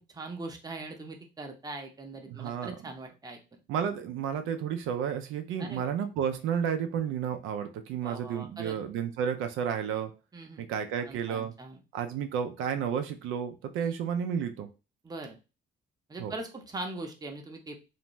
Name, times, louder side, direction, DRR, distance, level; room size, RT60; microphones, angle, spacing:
voice 1, 0.1-3.4 5.6-5.9 8.0-8.8 10.3-10.7 11.0-11.8 13.8-13.9 15.0-15.4 16.1-17.8, right 2 dB, 20° right, 3 dB, 0.6 m, -41 dB
voice 2, 2.3-2.7 3.7-10.1 10.6-11.5 11.9-14.7 16.2-16.3, right 8 dB, 90° right, 7 dB, 0.4 m, -32 dB
2.5 x 2.1 x 3.0 m, 0.30 s
cardioid pair, 90°, 20 cm